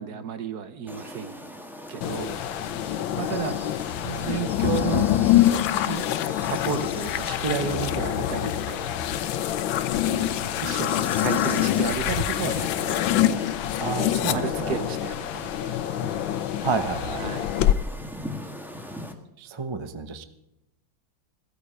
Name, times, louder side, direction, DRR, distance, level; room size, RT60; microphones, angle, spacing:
voice 1, 0.0-1.3 1.9-2.4 3.2-3.6 4.0-5.1 5.9-9.0 9.9-13.2 14.3-15.8 17.2-17.6, right 8 dB, 60° right, 11 dB, 1.3 m, -32 dB
sound 1, 0.9-19.1, equal, ahead, 1.4 m, -41 dB
sound 2, 2.0-17.7, left 12 dB, 80° left, 1.4 m, -25 dB
voice 2, 13.8-14.7 16.6-17.2 19.4-20.2, right 4 dB, 30° right, 10 dB, 0.5 m, -30 dB
17.0 x 13.0 x 5.0 m, 0.84 s
omnidirectional pair, 2.1 m